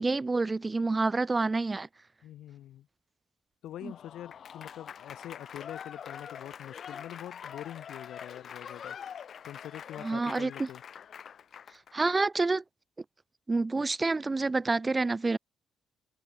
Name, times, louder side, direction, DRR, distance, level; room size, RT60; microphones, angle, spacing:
voice 1, 0.0-1.9 10.0-10.7 11.9-12.6 13.5-15.4, right 3 dB, 25° right, 0.6 m, -28 dB
voice 2, 2.2-2.9 3.6-9.0 9.4-10.8, left 12 dB, 80° left, 4.0 m, -44 dB
Applause / Crowd, 3.8-11.9, left 8 dB, 55° left, 6.6 m, -44 dB
cardioid pair, 90°, 0 cm